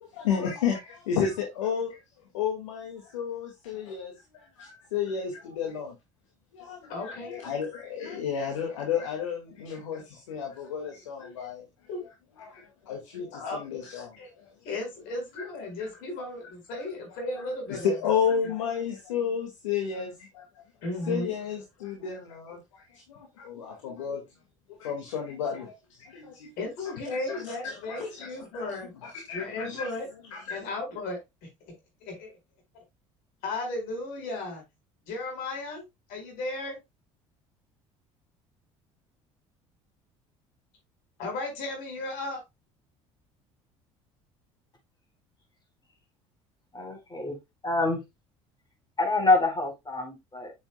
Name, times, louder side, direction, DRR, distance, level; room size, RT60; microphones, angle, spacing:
voice 1, 0.0-2.0 2.3-6.0 6.5-11.7 12.4-14.5 17.7-20.5 21.0-24.2 24.8-26.5 27.2-28.3 28.5-28.8 29.0-29.9 30.3-30.6, left 7 dB, 85° left, 1.9 m, -32 dB
voice 2, 6.9-7.3 11.9-12.0 13.3-13.6 14.2-14.3 14.6-17.9 18.3-18.5 20.8-21.3 26.6-28.9 29.3-30.1 30.5-31.2 32.0-32.3 32.7-32.8 33.4-34.6 35.0-36.8 41.2-42.4, left 2 dB, 65° left, 4.7 m, -35 dB
voice 3, 46.7-47.3 47.6-48.0 49.0-50.5, left 2 dB, 25° left, 4.5 m, -26 dB
7.7 x 7.0 x 2.2 m
hypercardioid pair, 65°, 16 cm